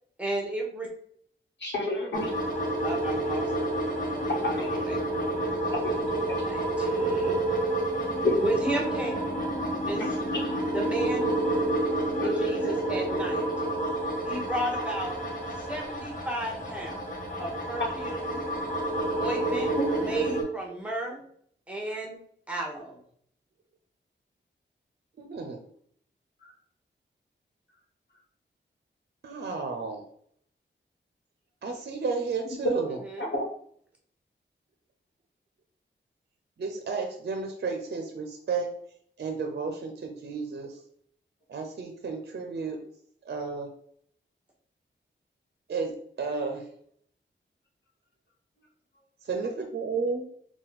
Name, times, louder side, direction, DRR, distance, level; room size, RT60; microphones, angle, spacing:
voice 1, 0.2-0.9 2.8-3.5 4.1-4.4 4.9-5.0 6.3-7.4 8.4-9.1 9.9-10.0 10.7-11.4 12.2-13.4 14.3-15.2 15.7-17.0 17.4-18.4 19.2-19.7 20.0-21.2 21.7-22.2 22.5-23.0 33.1-33.3, right 1 dB, 5° right, -1 dB, 1.1 m, -33 dB
voice 2, 1.6-2.3 4.3-4.8 5.8-6.2 8.2-8.3 9.9-10.5 12.2-12.8 18.1-18.2 19.8-19.9 32.6-32.8 33.2-33.4, left 1 dB, 65° left, -3 dB, 1.1 m, -30 dB
sound 1, 2.1-20.4, right 1 dB, 40° left, 1.1 m, -29 dB
voice 3, 25.2-25.6 29.2-30.0 31.6-33.0 36.6-38.7 39.2-40.8 41.5-42.8 43.2-43.7 45.7-45.9 46.2-46.6 49.2-50.2, right 4 dB, 55° right, 4 dB, 0.6 m, -32 dB
4.0 x 2.3 x 4.0 m, 0.64 s
wide cardioid pair, 105°, 20 cm